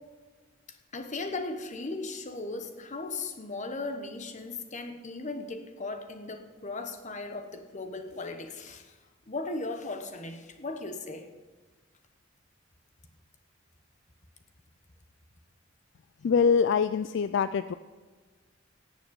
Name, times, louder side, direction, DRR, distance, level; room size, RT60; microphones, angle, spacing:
voice 1, 0.7-9.0 9.3-11.3, left 3 dB, 40° left, 7 dB, 1.2 m, -37 dB
voice 2, 16.2-17.7, left 6 dB, 65° left, 12 dB, 0.3 m, -24 dB
17.5 x 6.2 x 6.9 m, 1.4 s
head